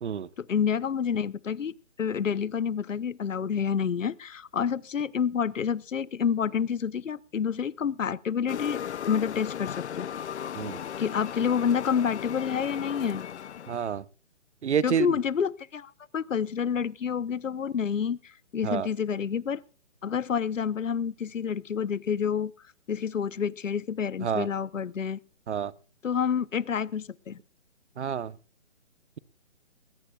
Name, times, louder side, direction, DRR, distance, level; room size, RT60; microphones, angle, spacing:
voice 1, 0.4-8.8 9.1-10.1 11.0-13.3 14.8-19.6 20.0-22.5 22.9-25.2 26.0-27.4, left 7 dB, 90° left, 0.9 m, -28 dB
sound 1, 8.5-13.9, left 9 dB, 65° left, 0.6 m, -36 dB
voice 2, 13.7-14.0 14.6-15.2 18.6-18.9 24.2-24.5 25.5-25.7 28.0-28.4, right 8 dB, 65° right, 1.0 m, -28 dB
21.0 x 19.0 x 2.4 m
hypercardioid pair, 155°, 37 cm